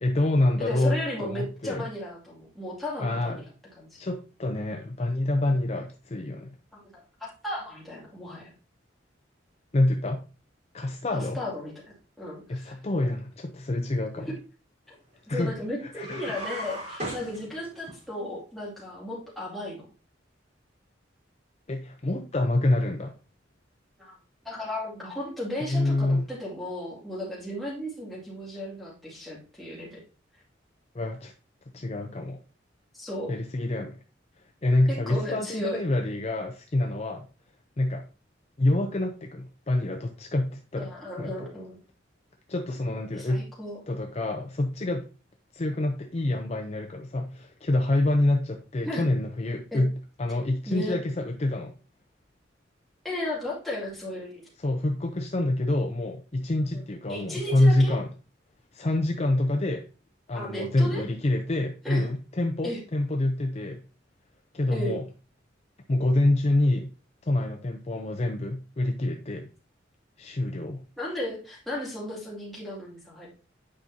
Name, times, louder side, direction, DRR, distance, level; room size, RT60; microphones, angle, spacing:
voice 1, 0.0-1.9 3.0-3.4 4.0-6.6 9.7-10.2 10.7-11.4 12.5-14.3 15.3-15.5 16.0-16.3 21.7-23.1 25.7-26.3 30.9-31.3 31.7-32.4 33.3-34.0 34.6-37.2 37.8-38.0 38.6-41.3 42.5-43.5 43.9-45.1 45.5-49.9 50.2-51.7 54.6-58.1 58.7-59.8 60.3-63.8 64.5-65.0 65.9-66.9 67.3-69.5 70.2-70.8, left 1 dB, 35° left, 4 dB, 0.6 m, -26 dB
voice 2, 0.6-3.5 3.8-3.9 6.7-6.9 7.2-8.5 11.1-12.7 15.3-19.9 24.0-24.1 24.4-30.0 32.9-33.3 34.9-35.8 40.8-41.8 43.1-43.8 48.8-49.1 49.7-49.8 50.7-51.0 53.0-54.5 56.7-56.8 57.1-58.0 60.3-61.0 61.8-62.1 62.6-62.8 64.7-65.0 71.0-73.3, left 1 dB, ahead, -6 dB, 2.5 m, -35 dB
sound 1, 15.9-18.0, right 1 dB, 40° right, 3.5 m, -37 dB
8.8 x 5.3 x 2.8 m, 0.34 s
head